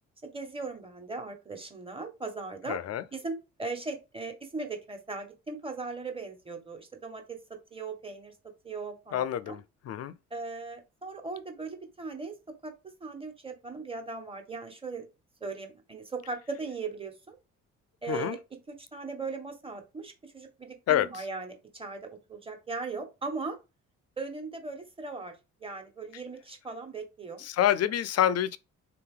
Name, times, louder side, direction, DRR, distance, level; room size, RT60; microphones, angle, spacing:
voice 1, 0.2-2.8 3.1-7.4 7.7-8.3 8.6-9.5 10.3-12.4 12.6-15.0 15.4-17.4 18.0-23.6 24.2-25.3 25.6-27.4, right 3 dB, 20° right, 1.4 m, -38 dB
voice 2, 2.7-3.0 9.1-9.6 9.9-10.1 18.1-18.4 20.9-21.1 27.4-28.6, left 11 dB, 55° left, 0.5 m, -27 dB
4.0 x 2.9 x 3.8 m
cardioid pair, 90°, 30 cm